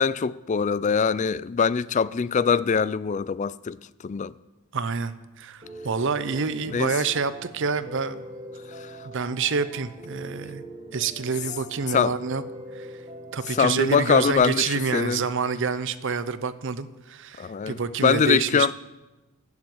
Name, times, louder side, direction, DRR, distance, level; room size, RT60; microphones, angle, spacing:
voice 1, 0.0-3.8 4.0-4.3 6.7-6.9 11.9-12.1 13.5-15.2 17.4-18.7, left 6 dB, 35° left, 0.3 m, -23 dB
voice 2, 4.7-8.2 9.0-10.6 10.9-12.4 12.7-12.9 13.3-18.7, right 5 dB, 60° right, 0.7 m, -27 dB
Piano, 5.6-14.3, right 1 dB, 25° right, 1.8 m, -42 dB
15.0 x 7.3 x 7.9 m
head